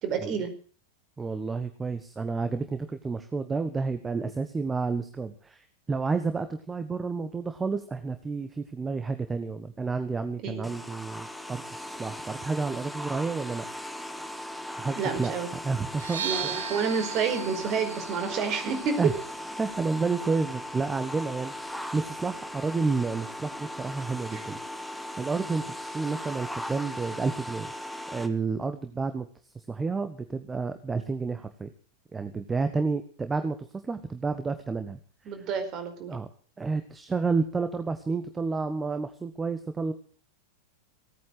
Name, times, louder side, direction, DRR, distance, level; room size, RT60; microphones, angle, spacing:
voice 1, 0.0-0.5 10.4-10.7 14.9-15.5 16.2-19.1 24.3-24.4 35.2-36.1, right 6 dB, 35° right, 7 dB, 4.8 m, -29 dB
voice 2, 1.2-13.6 14.8-16.2 19.0-19.1 19.6-24.6 25.2-27.7 28.1-29.3 29.7-31.7 32.1-33.6 33.8-35.0 36.1-36.3 36.6-39.9, right 4 dB, 15° right, 9 dB, 1.3 m, -30 dB
sound 1, 10.6-28.3, left 1 dB, ahead, 1.6 m, -38 dB
sound 2, 15.9-23.7, right 7 dB, 65° right, 1.7 m, -40 dB
18.0 x 9.4 x 7.6 m, 0.42 s
figure-of-eight pair, 90°, 0 cm